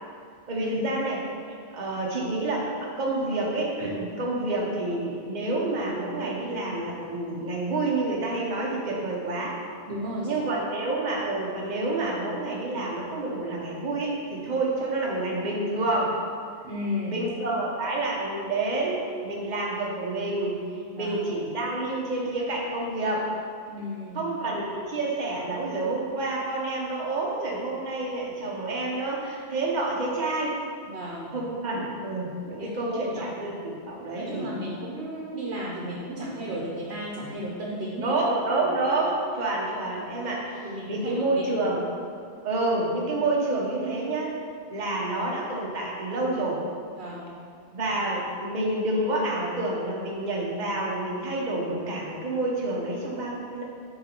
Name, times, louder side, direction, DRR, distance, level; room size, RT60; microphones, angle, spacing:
voice 1, 0.5-1.2 1.7-9.6 10.2-16.2 17.1-20.6 20.9-23.3 24.1-30.6 31.3-34.5 38.0-41.9 42.4-44.4 44.7-46.6 47.7-53.6, right 2 dB, 45° right, -3 dB, 1.1 m, -28 dB
voice 2, 9.9-10.4 16.6-17.2 20.9-21.2 23.7-24.2 30.8-31.3 32.6-33.3 34.1-38.2 40.6-41.7 47.0-47.4, equal, 80° right, -3 dB, 1.2 m, -34 dB
8.0 x 3.9 x 4.4 m, 2.2 s
omnidirectional pair, 1.1 m